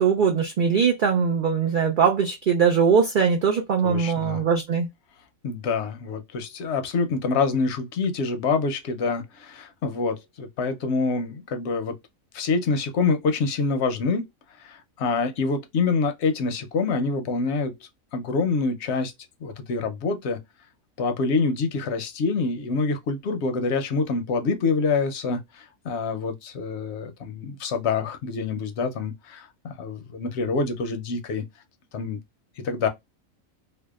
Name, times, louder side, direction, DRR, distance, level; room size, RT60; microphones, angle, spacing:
voice 1, 0.0-4.9, right 6 dB, 85° right, 0.4 m, -21 dB
voice 2, 3.8-4.4 5.4-12.0 12.3-14.2 14.6-17.7 18.1-19.1 19.4-20.4 21.0-31.4 31.9-32.2 32.6-32.9, left 4 dB, 65° left, 0.7 m, -26 dB
2.7 x 2.1 x 2.2 m
omnidirectional pair, 1.4 m